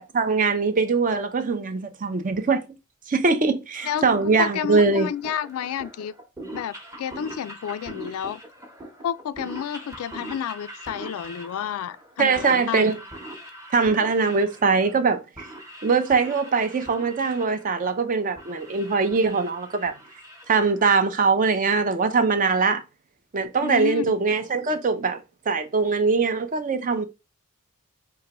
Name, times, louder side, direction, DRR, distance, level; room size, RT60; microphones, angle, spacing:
voice 1, 0.1-2.7 3.1-5.1 12.2-13.0 13.7-15.5 15.8-19.9 20.5-22.8 23.3-27.0, right 4 dB, 40° right, 0.5 m, -22 dB
sound 1, 3.8-21.2, right 1 dB, 15° right, 0.9 m, -42 dB
voice 2, 4.4-6.1 6.5-8.4 9.0-12.9 23.6-24.1, left 9 dB, 75° left, 0.3 m, -30 dB
4.5 x 2.9 x 2.9 m
head